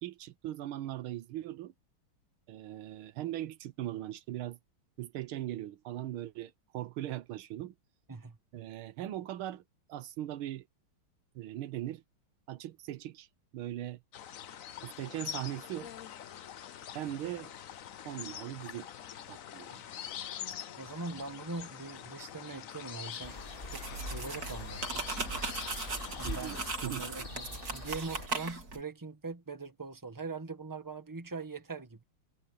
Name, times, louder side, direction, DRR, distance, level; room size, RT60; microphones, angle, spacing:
voice 1, 0.0-1.7 2.5-4.6 5.0-7.7 8.5-9.6 9.9-10.6 11.3-12.0 12.5-13.3 13.5-14.0 14.8-15.9 16.9-17.5 18.0-18.9 19.3-19.8 26.2-27.0, right 13 dB, 85° right, 1.7 m, -39 dB
sound 1, 14.1-26.7, left 9 dB, 60° left, 0.9 m, -45 dB
voice 2, 20.8-23.4 23.7-25.0 26.1-26.5 26.8-32.0, right 4 dB, 10° right, 1.6 m, -42 dB
sound 2, 23.2-28.3, left 2 dB, 25° left, 3.1 m, -44 dB
sound 3, 23.7-28.8, right 3 dB, 45° right, 3.1 m, -38 dB
omnidirectional pair, 2.3 m